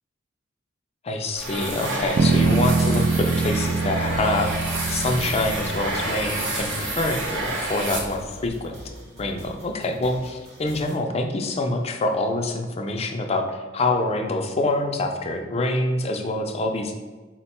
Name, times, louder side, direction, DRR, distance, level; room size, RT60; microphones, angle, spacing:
voice 1, 1.0-4.5 4.9-8.7 9.2-16.9, left 2 dB, 30° left, 3 dB, 0.4 m, -26 dB
sound 1, 1.4-8.5, right 2 dB, 80° right, 0.9 m, -29 dB
sound 2, 2.2-6.5, right 4 dB, 55° right, 0.3 m, -24 dB
sound 3, 3.8-11.0, equal, 30° right, 1.0 m, -43 dB
4.4 x 2.1 x 4.2 m, 1.3 s
head